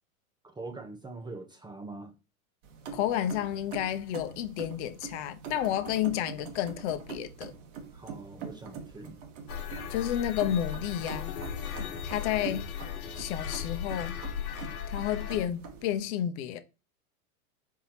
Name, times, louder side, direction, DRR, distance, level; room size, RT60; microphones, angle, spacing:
voice 1, 0.4-2.1 7.9-9.2, right 3 dB, 10° right, 0.6 m, -43 dB
sound 1, 2.6-16.1, right 6 dB, 55° right, 1.3 m, -44 dB
voice 2, 2.9-7.5 9.9-11.4 12.0-12.7 13.1-14.2 14.9-16.6, left 11 dB, 50° left, 0.8 m, -31 dB
sound 2, 9.5-15.5, left 8 dB, 75° left, 1.1 m, -37 dB
4.6 x 4.1 x 2.8 m
hypercardioid pair, 105°, 43 cm